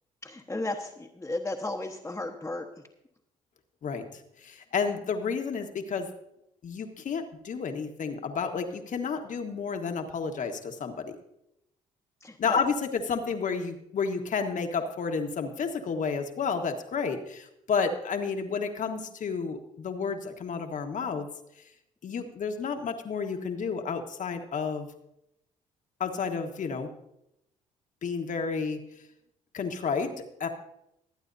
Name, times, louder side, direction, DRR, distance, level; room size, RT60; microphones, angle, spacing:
voice 1, 0.2-2.7 12.2-12.6, left 2 dB, 15° left, -1 dB, 1.2 m, -34 dB
voice 2, 4.4-6.1 6.6-11.2 12.4-21.3 22.0-24.9 26.0-26.9 28.0-28.8 29.5-30.5, left 5 dB, 55° left, 5 dB, 1.4 m, -31 dB
22.5 x 8.9 x 2.7 m, 0.83 s
supercardioid pair, 60°, 16 cm